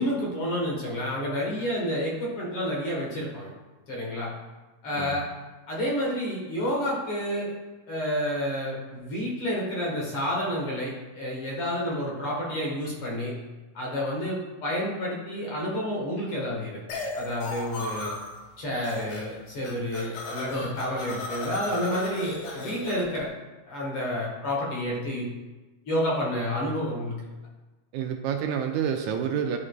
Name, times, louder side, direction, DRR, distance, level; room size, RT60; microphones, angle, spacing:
voice 1, 0.0-3.5 3.9-4.3 4.8-5.3 5.7-7.5 7.9-13.4 13.8-16.8 17.2-18.2 18.6-23.3 23.7-25.3 25.9-27.2, equal, 55° left, -4 dB, 2.0 m, -29 dB
sound 1, 16.9-18.4 18.7-19.3 19.6-23.2, left 2 dB, 85° left, 2.7 m, -35 dB
voice 2, 27.9-29.6, right 8 dB, 80° right, 5 dB, 1.8 m, -28 dB
11.0 x 4.9 x 2.2 m, 1.2 s
omnidirectional pair, 3.4 m